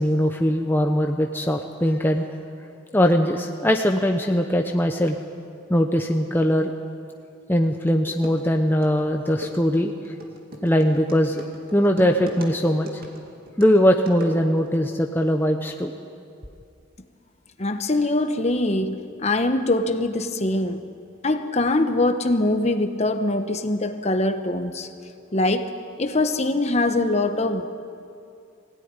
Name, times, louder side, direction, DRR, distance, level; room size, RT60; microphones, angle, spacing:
voice 1, 0.0-2.2 2.9-5.2 5.7-6.7 7.5-10.1 10.6-11.4 11.7-12.9 13.6-15.9, equal, 10° left, 3 dB, 0.8 m, -21 dB
sound 1, 7.6-7.7 8.1-14.8, equal, 50° right, 2.5 m, -39 dB
voice 2, 17.6-20.8 21.2-24.9 25.3-25.7 26.0-27.7, left 2 dB, 35° left, 8 dB, 1.1 m, -23 dB
21.5 x 17.0 x 9.8 m, 2.5 s
head